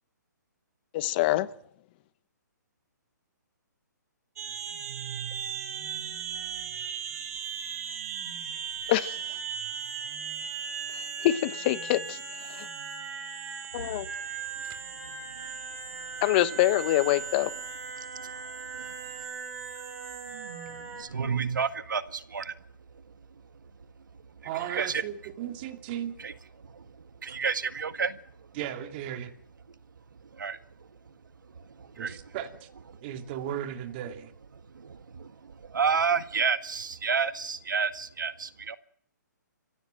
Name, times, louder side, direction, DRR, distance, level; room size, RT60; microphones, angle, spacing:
voice 1, 0.9-1.5 8.9-9.2 11.2-12.2 12.6-12.7 13.7-14.1 16.2-17.5, left 15 dB, 30° left, 1.1 m, -25 dB
sound 1, 4.4-21.0, right 6 dB, 50° right, 6.2 m, -37 dB
voice 2, 18.0-18.9 20.7-22.6 24.4-25.0 26.2-26.3 26.6-28.5 30.4-31.1 31.6-32.3 32.9-33.0 34.7-38.8, right 6 dB, 80° right, 1.8 m, -31 dB
voice 3, 24.4-26.2 28.5-29.3 32.0-32.7 33.0-34.3, right 10 dB, 30° right, 2.5 m, -36 dB
30.0 x 16.0 x 7.7 m
hypercardioid pair, 150°, 10 cm